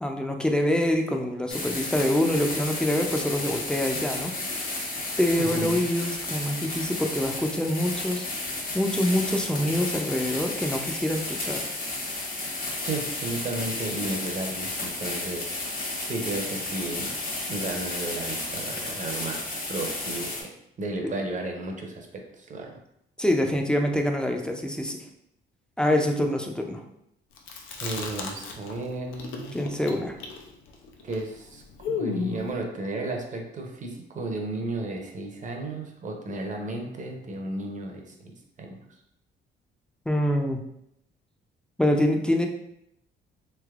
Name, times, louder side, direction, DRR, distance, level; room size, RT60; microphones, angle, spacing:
voice 1, 0.0-4.3 5.2-8.3 8.7-11.6 23.2-25.0 25.8-26.8 29.5-30.2 40.1-40.6 41.8-42.5, left 1 dB, 5° left, 3 dB, 0.4 m, -25 dB
sound 1, 1.5-20.4, left 2 dB, 45° left, 1.0 m, -32 dB
voice 2, 5.4-5.8 12.8-15.5 16.1-17.2 17.5-20.5 20.8-22.7 27.8-29.6 31.0-38.8, right 2 dB, 40° right, 2 dB, 0.7 m, -33 dB
Chewing mastication, 27.4-28.8 29.1-32.5, left 5 dB, 90° left, 0.5 m, -33 dB
3.2 x 2.9 x 2.4 m, 0.78 s
cardioid pair, 90°, 20 cm